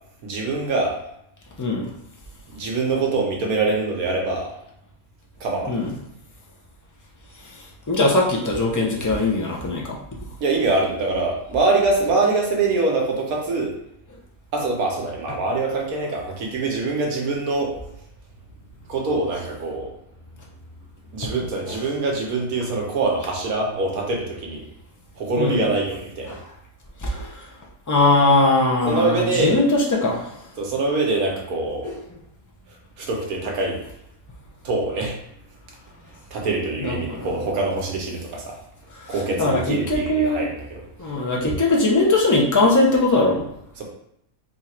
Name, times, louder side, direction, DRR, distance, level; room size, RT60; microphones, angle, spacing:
voice 1, 0.2-1.0 2.5-4.5 5.4-5.8 10.4-13.7 14.5-17.7 18.9-19.9 21.1-24.7 25.2-26.4 28.8-29.6 30.6-31.9 33.0-33.8 34.6-35.1 36.3-38.6 39.1-40.8 43.8-43.9, right 3 dB, 80° right, -1 dB, 1.4 m, -24 dB
voice 2, 1.6-1.9 5.7-5.9 7.4-10.0 21.7-21.8 25.4-25.6 26.3-26.4 27.0-27.5 27.9-30.3 31.8-32.0 36.8-37.3 38.9-40.5 41.0-43.5, left 2 dB, 30° left, -2 dB, 0.3 m, -21 dB
3.6 x 2.4 x 4.2 m, 0.78 s
omnidirectional pair, 1.5 m